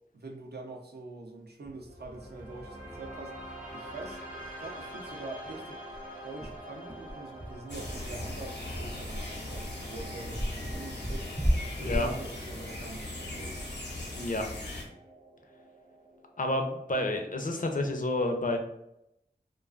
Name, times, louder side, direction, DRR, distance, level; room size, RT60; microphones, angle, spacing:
voice 1, 0.1-3.4 3.7-4.2 4.6-5.8 6.2-11.3 11.8-13.7, right 2 dB, 70° right, 1 dB, 0.5 m, -44 dB
sound 1, 1.6-17.6, right 1 dB, 45° right, 0.8 m, -47 dB
sound 2, 3.5-3.6 3.9-4.0 4.4-4.5 4.9-5.0 5.4-13.9, equal, 10° right, 0.4 m, -34 dB
sound 3, 7.7-14.8, left 2 dB, 80° left, 0.7 m, -39 dB
voice 2, 14.2-14.5 16.4-18.6, left 2 dB, 50° left, 4 dB, 0.4 m, -29 dB
2.4 x 2.2 x 2.3 m, 0.83 s
wide cardioid pair, 45°, 17 cm